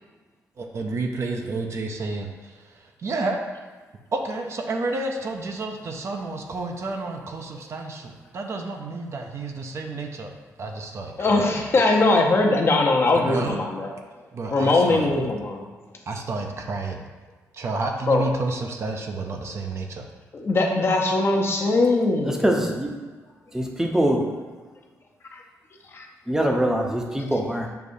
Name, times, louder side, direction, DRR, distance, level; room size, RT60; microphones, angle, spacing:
voice 1, 0.6-3.4 4.1-10.3 10.6-12.0 13.1-13.6 14.3-15.3 16.1-17.1 17.5-20.1, right 3 dB, 50° right, 3 dB, 0.5 m, -30 dB
voice 2, 11.2-13.9 14.5-15.7 18.1-18.3 20.3-22.4 25.9-26.1, left 2 dB, 45° left, 1 dB, 0.6 m, -21 dB
voice 3, 22.2-22.9 23.5-24.2 26.3-27.7, right 1 dB, 10° right, 1 dB, 0.6 m, -23 dB
6.6 x 2.6 x 2.6 m, 1.4 s
cardioid pair, 85°, 6 cm